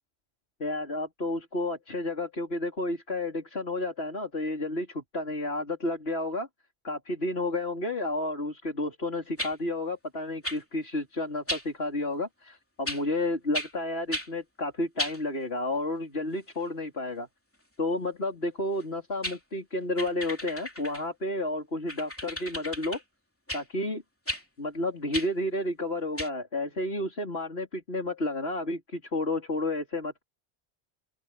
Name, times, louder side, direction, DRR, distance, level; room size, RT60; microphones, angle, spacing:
voice 1, 0.6-6.5 6.8-17.3 17.8-23.0 23.5-24.0 24.6-30.2, left 2 dB, 75° left, 4.6 m, -31 dB
sound 1, 9.4-9.5 10.4-10.6 11.5-11.6 12.9-13.0 13.5-13.7 14.1-14.3 15.0-15.2 18.8-18.9 19.2-19.4 20.0-21.1 21.9-23.0 23.5-23.6 24.3-24.4 25.1-25.3 26.2-26.3, equal, 10° left, 2.9 m, -34 dB
open air
omnidirectional pair, 1.1 m